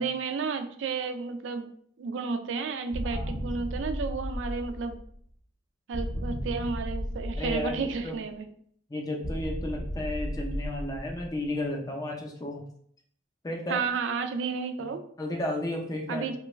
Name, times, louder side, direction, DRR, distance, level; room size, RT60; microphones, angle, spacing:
voice 1, 0.0-1.7 2.0-4.9 5.9-8.5 13.7-15.0 16.1-16.4, right 5 dB, 80° right, 8 dB, 0.4 m, -32 dB
sound 1, 2.9-5.2 5.9-8.2 9.2-11.5, equal, 45° left, 0.8 m, -34 dB
voice 2, 3.0-3.4 6.3-6.4 7.4-8.2 8.9-12.6 13.4-13.8 14.8-14.9 15.2-16.3, left 1 dB, 20° left, 0 dB, 0.5 m, -33 dB
3.2 x 2.2 x 3.0 m, 0.62 s
head